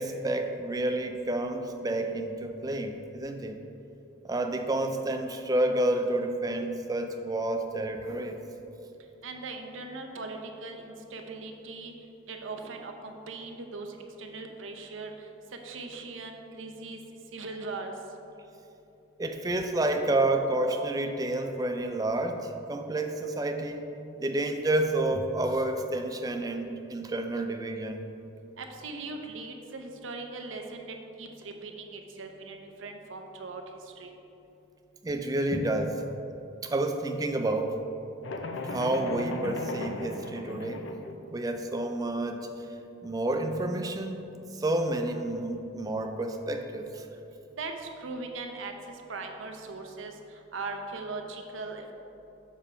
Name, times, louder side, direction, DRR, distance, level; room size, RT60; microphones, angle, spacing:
voice 1, 0.0-3.6 4.3-8.4 19.2-23.9 24.2-28.0 35.0-36.0 36.6-37.8 38.7-40.9 41.3-42.5 43.0-44.3 44.5-47.1, right 1 dB, 20° right, 5 dB, 0.4 m, -29 dB
voice 2, 9.2-11.9 12.3-15.3 15.6-17.0 17.3-17.9 28.6-33.6 34.0-34.1 47.6-51.9, right 3 dB, 80° right, 4 dB, 0.7 m, -40 dB
sound 1, 38.2-41.1, left 2 dB, 70° left, 0.5 m, -36 dB
7.3 x 3.5 x 5.5 m, 2.9 s
head